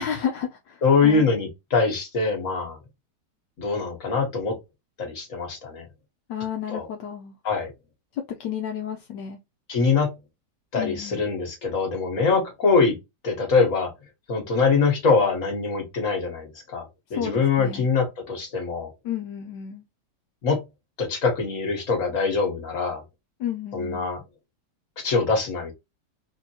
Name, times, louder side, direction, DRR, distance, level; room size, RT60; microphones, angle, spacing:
voice 1, 0.0-1.3 6.3-7.4 8.1-9.4 10.8-11.2 17.1-17.9 19.0-19.8 23.4-24.1, left 8 dB, 75° left, 1.3 m, -32 dB
voice 2, 0.8-2.8 3.6-4.6 5.0-5.9 6.7-6.9 7.4-7.7 9.7-10.1 10.7-13.0 13.2-13.9 14.3-16.9 17.1-18.9 20.4-20.6 21.0-23.0 23.7-24.2 25.0-25.7, left 4 dB, 45° left, 1.9 m, -23 dB
4.1 x 2.9 x 2.8 m
omnidirectional pair, 1.9 m